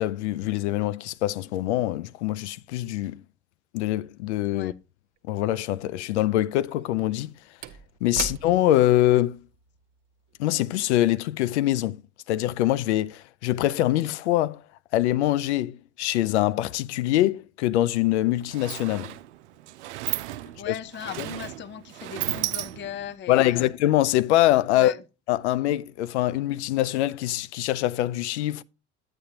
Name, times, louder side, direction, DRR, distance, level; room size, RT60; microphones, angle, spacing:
voice 1, 0.0-3.2 3.7-4.7 5.3-7.3 8.0-9.4 10.4-12.0 12.3-14.6 14.9-19.1 20.7-20.8 21.2-21.3 23.3-24.9 25.3-28.6, left 14 dB, 80° left, 0.5 m, -24 dB
Slam / Wood, 5.2-5.3 6.7-11.4 11.8-11.9, right 9 dB, 55° right, 0.9 m, -41 dB
Sliding door, 17.8-18.0 18.2-23.2, right 15 dB, 80° right, 0.5 m, -34 dB
voice 2, 20.4-23.7 24.7-25.0, left 9 dB, 35° left, 0.6 m, -37 dB
9.9 x 8.6 x 2.9 m
hypercardioid pair, 65°, 34 cm